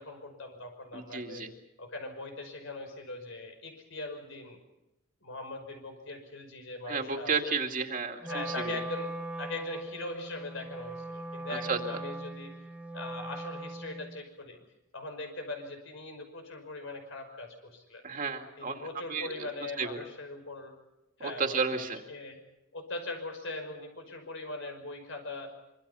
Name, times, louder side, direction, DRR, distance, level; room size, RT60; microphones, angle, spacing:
voice 1, 0.0-1.5 1.8-4.6 5.2-7.5 8.2-9.1 9.4-12.5 12.9-14.6 14.9-18.0 18.6-20.7 21.2-21.8 22.1-22.4 22.7-25.5, left 2 dB, 70° left, 5 dB, 5.5 m, -41 dB
voice 2, 0.9-1.5 6.9-8.7 11.5-11.8 18.0-18.8 19.1-19.5 19.8-20.0 21.4-22.0, right 4 dB, 40° right, 4 dB, 2.4 m, -32 dB
Wind instrument woodwind instrument, 8.2-14.2, right 2 dB, 5° right, 1.6 m, -40 dB
25.5 x 25.5 x 5.7 m, 0.90 s
head